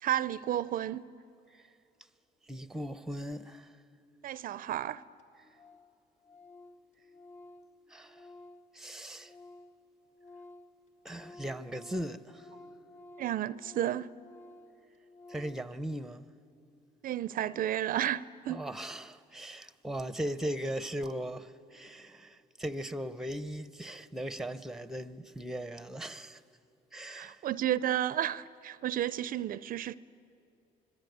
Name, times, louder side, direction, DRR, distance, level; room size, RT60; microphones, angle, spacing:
voice 1, 0.0-1.0 4.2-5.0 13.2-14.1 17.0-18.6 27.1-30.0, right 12 dB, 55° right, 0.5 m, -32 dB
voice 2, 2.5-3.7 5.4-5.8 7.9-8.3 8.7-9.3 11.0-12.5 15.3-16.3 18.5-26.4 26.9-27.5, right 1 dB, ahead, 0.8 m, -38 dB
Organ, 4.6-4.7 4.9-5.0 5.2-5.3 5.5-5.9 6.2-9.8 10.1-15.7, left 2 dB, 45° left, 1.5 m, -53 dB
25.5 x 22.0 x 9.3 m
cardioid pair, 110°, 17 cm